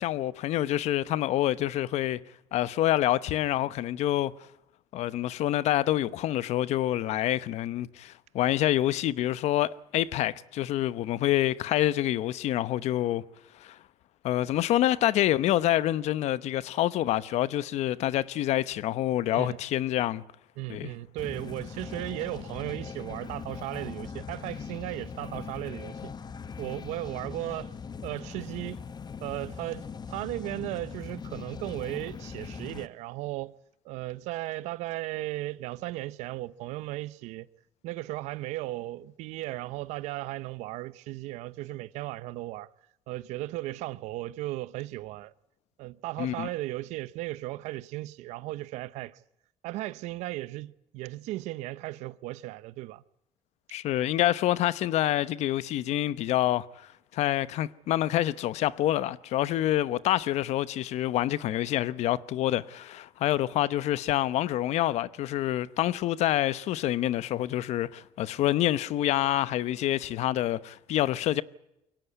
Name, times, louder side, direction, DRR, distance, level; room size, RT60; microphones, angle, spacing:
voice 1, 0.0-2.2 2.5-4.3 4.9-13.2 13.6-13.8 14.2-20.2 20.7-20.9 46.2-46.5 53.7-71.4, left 13 dB, 75° left, 0.9 m, -27 dB
voice 2, 20.6-26.1 26.6-27.7 28.0-28.8 29.2-33.5 33.8-37.5 37.8-42.7 43.1-45.3 45.8-49.2 49.6-53.0, right 17 dB, 85° right, 0.8 m, -36 dB
sound 1, 21.2-32.9, left 6 dB, 35° left, 1.2 m, -40 dB
23.0 x 18.0 x 9.5 m
cardioid pair, 85°, 11 cm